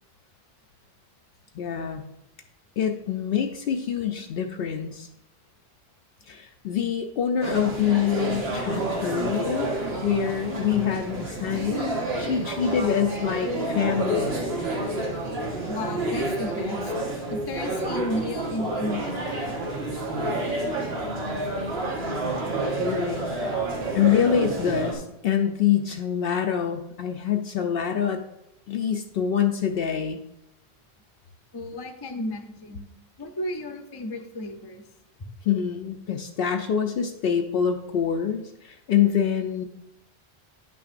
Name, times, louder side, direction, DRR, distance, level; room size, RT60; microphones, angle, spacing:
voice 1, 1.5-2.0 2.8-5.1 6.3-9.7 10.0-11.9 12.2-14.5 22.8-23.6 23.9-28.2 28.7-30.2 35.4-39.6, left 8 dB, 70° left, 4 dB, 0.7 m, -25 dB
sound 1, 7.4-24.9, right 2 dB, 80° right, 1.6 m, -29 dB
voice 2, 15.7-16.9 17.3-19.6 31.5-32.9 33.2-34.8, left 1 dB, 30° left, 5 dB, 0.6 m, -33 dB
9.8 x 5.8 x 2.5 m, 0.84 s
omnidirectional pair, 1.1 m